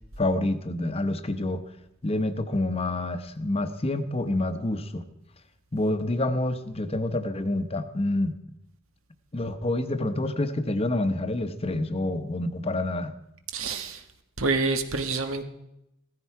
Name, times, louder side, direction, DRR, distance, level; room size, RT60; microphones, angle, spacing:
voice 1, 0.2-1.6 2.0-5.0 5.7-8.3 9.3-13.1, left 2 dB, 30° left, 10 dB, 0.9 m, -27 dB
voice 2, 13.5-14.0 14.4-15.4, right 3 dB, 90° right, 7 dB, 1.5 m, -27 dB
16.0 x 14.5 x 4.7 m, 0.82 s
head